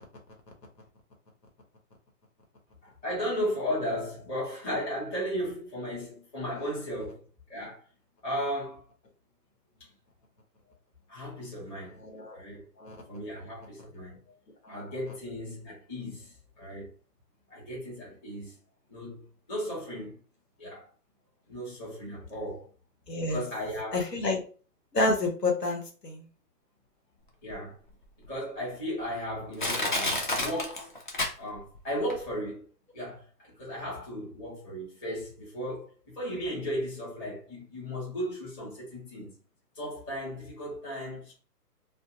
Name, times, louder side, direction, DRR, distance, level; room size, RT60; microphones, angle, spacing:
voice 1, 2.8-7.9 8.2-8.9 9.8-9.9 11.1-12.0 12.3-12.6 13.1-14.3 14.7-16.9 17.5-18.5 18.9-20.2 20.6-20.9 21.5-22.7 23.2-24.1 27.4-27.8 28.2-30.9 31.4-32.7 32.9-39.3 39.7-41.4, equal, 15° left, 0.9 m, -35 dB
voice 2, 12.0-12.4 12.8-13.0 14.6-14.8 23.1-23.4 23.9-24.4 24.9-26.3, left 2 dB, 85° left, 1.0 m, -29 dB
Crushing, 27.5-27.6 28.2-28.3 29.0-29.1 29.6-31.8 32.1-32.2, left 1 dB, 35° left, 0.4 m, -29 dB
2.6 x 2.0 x 2.8 m
figure-of-eight pair, 135°, 48 cm